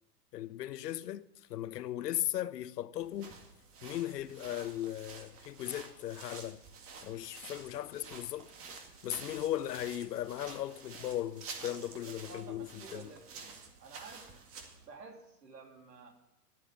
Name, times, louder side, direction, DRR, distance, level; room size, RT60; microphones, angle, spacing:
voice 1, 0.3-3.4 3.8-6.6 7.0-13.1, left 12 dB, 75° left, 0.9 m, -37 dB
sound 1, 3.0-14.9, right 5 dB, 25° right, 2.0 m, -50 dB
voice 2, 12.1-14.4 14.8-16.1, right 4 dB, 90° right, 3.3 m, -52 dB
11.0 x 8.3 x 9.6 m
hypercardioid pair, 125°, 48 cm